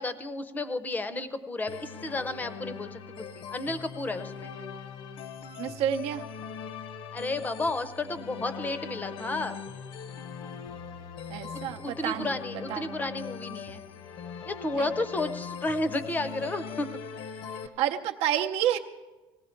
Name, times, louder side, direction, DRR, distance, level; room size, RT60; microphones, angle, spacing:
voice 1, 0.0-4.5 7.1-9.6 11.5-13.8 14.5-16.9, left 2 dB, 15° left, 11 dB, 0.6 m, -32 dB
sound 1, 1.7-17.7, left 6 dB, 55° left, 0.8 m, -41 dB
voice 2, 5.6-6.2 11.3-12.3 12.7-13.0 14.7-14.9 17.8-18.8, right 10 dB, 70° right, 4 dB, 0.7 m, -29 dB
18.5 x 16.0 x 4.4 m, 1.2 s
cardioid pair, 170°, 11 cm